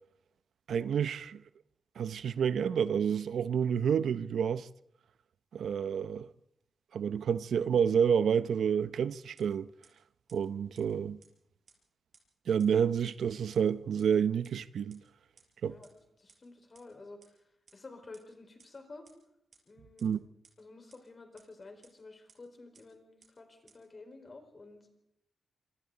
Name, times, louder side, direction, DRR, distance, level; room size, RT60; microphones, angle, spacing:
voice 1, 0.7-1.4 2.0-4.7 5.5-6.3 6.9-9.7 10.3-11.2 12.5-15.0 15.6-15.8 20.0-20.2, right 7 dB, 80° right, 0.7 m, -29 dB
sound 1, 9.4-9.5 9.8-9.9 10.3-10.4 10.7-10.8 11.2-11.3 11.7-11.8 12.1-12.2 12.6-12.7 13.1-13.2 13.5-13.6 14.0-14.1 14.4-14.5 14.9-15.0 15.4-15.5 15.8-15.9 16.3-16.4 16.7-16.8 17.2-17.3 17.7-17.8 18.1-18.2 18.6-18.7 19.0-19.1 19.5-19.6 20.0-20.1 20.4-20.5 20.9-21.0 21.4-21.5 21.8-21.9 22.3-22.4 22.7-22.8 23.2-23.3 23.7-23.8, right 5 dB, 55° right, 5.0 m, -59 dB
voice 2, 15.7-17.3 17.7-19.1 19.7-20.2 20.6-24.9, left 3 dB, 35° left, 4.7 m, -51 dB
26.0 x 24.5 x 4.0 m
wide cardioid pair, 110°, 0 cm